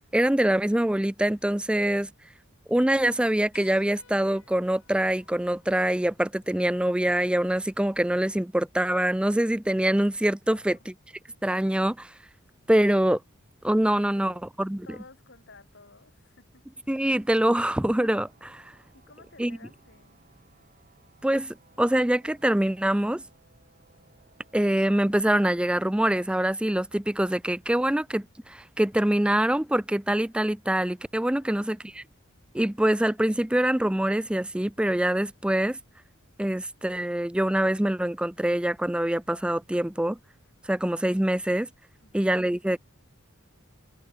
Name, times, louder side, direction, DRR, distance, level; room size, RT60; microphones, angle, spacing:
voice 1, 0.1-2.1 2.7-10.8 11.4-12.1 12.7-13.2 13.6-14.8 16.9-18.6 19.4-19.6 21.2-23.2 24.5-32.0 32.5-35.8 36.4-40.2 40.7-41.7 42.1-42.8, right 1 dB, 5° right, 0.4 m, -24 dB
sound 1, 3.5-8.6 10.1-10.2 11.9-12.0, left 6 dB, 80° left, 6.6 m, -60 dB
voice 2, 10.5-10.8 13.9-14.4 14.8-16.7 18.9-20.2 31.4-31.8 42.0-42.3, left 3 dB, 60° left, 7.5 m, -54 dB
sound 2, 17.1-25.3, right 3 dB, 40° right, 3.6 m, -62 dB
head